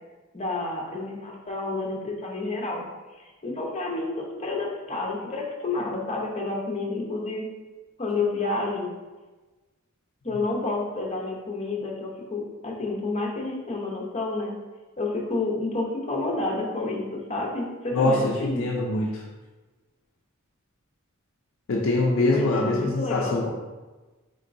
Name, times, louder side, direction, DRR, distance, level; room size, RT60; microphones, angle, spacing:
voice 1, 0.3-2.8 3.2-7.5 8.0-8.9 10.2-14.6 15.0-18.7 22.3-23.5, left 3 dB, 30° left, -2 dB, 0.7 m, -29 dB
voice 2, 17.9-19.2 21.7-23.5, left 2 dB, 60° left, -2 dB, 0.5 m, -24 dB
4.3 x 3.8 x 2.6 m, 1.2 s
head